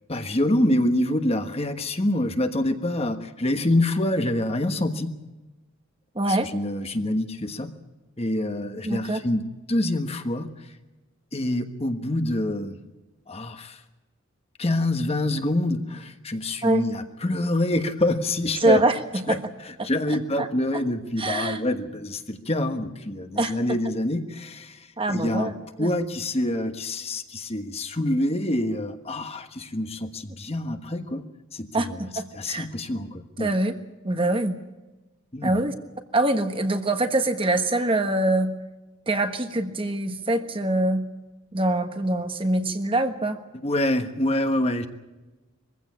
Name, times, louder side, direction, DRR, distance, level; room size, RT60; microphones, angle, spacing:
voice 1, 0.1-5.1 6.3-7.7 8.2-9.4 9.7-10.7 11.3-12.8 13.3-13.8 14.6-18.8 19.3-19.4 19.6-25.5 25.8-31.2 31.5-32.0 32.3-33.5 35.3-35.5 43.6-44.9, left 1 dB, 30° left, 7 dB, 1.3 m, -26 dB
voice 2, 6.1-6.5 8.8-9.2 16.6-16.8 18.6-19.4 19.8-19.9 20.4-20.5 20.7-20.8 21.2-21.6 23.4-23.5 25.0-25.5 25.8-25.9 31.7-32.7 33.4-33.7 34.0-34.5 35.4-35.7 36.1-38.5 39.1-41.1 41.5-43.4, right 2 dB, 25° right, 7 dB, 1.4 m, -24 dB
23.0 x 15.5 x 8.6 m, 1.1 s
head